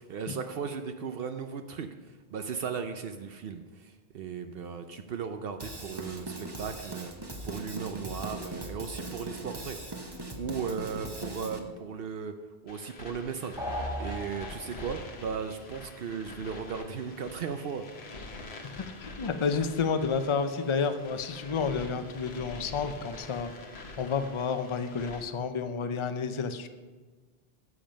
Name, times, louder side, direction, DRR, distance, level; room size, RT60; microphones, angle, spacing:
voice 1, 0.0-9.8 10.2-12.3 12.6-17.9, right 6 dB, 70° right, 7 dB, 0.8 m, -37 dB
Drum kit / Drum, 5.6-11.6, right 2 dB, 25° right, 1.0 m, -40 dB
sound 1, 12.7-25.2, left 2 dB, 75° left, 1.2 m, -46 dB
sound 2, 13.6-15.1, equal, 5° right, 1.3 m, -36 dB
voice 2, 18.8-23.5 24.0-26.7, left 5 dB, 35° left, 9 dB, 0.6 m, -30 dB
10.5 x 7.3 x 5.2 m, 1.4 s
omnidirectional pair, 1.1 m